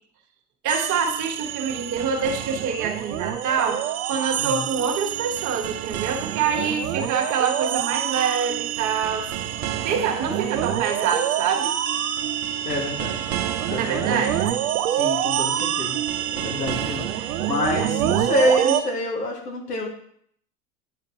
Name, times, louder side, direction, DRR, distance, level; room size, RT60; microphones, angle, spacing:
voice 1, 0.6-9.3 9.8-11.7 13.8-14.5, right 6 dB, 40° right, 3 dB, 1.3 m, -26 dB
sound 1, 0.7-18.8, right 11 dB, 70° right, 0.8 m, -27 dB
voice 2, 12.6-13.3 13.7-14.3 14.9-16.0 16.3-19.9, left 1 dB, 85° left, 0 dB, 1.9 m, -27 dB
9.4 x 5.0 x 2.8 m, 0.66 s
hypercardioid pair, 85°, 46 cm